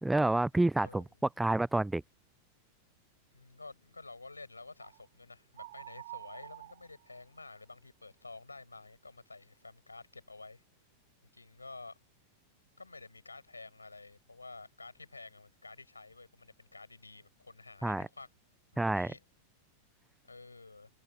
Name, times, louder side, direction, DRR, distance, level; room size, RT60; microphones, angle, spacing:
voice 1, 0.0-1.0 1.4-2.0 17.8-18.1 18.8-19.1, right 2 dB, 5° right, 0.4 m, -28 dB
voice 2, 3.3-10.6 11.3-12.0 12.8-18.3 18.7-19.2 20.2-20.9, left 3 dB, 80° left, 7.8 m, -50 dB
sound 1, 4.8-5.1 5.5-7.6, right 17 dB, 55° right, 3.4 m, -49 dB
figure-of-eight pair, 90°, 0 cm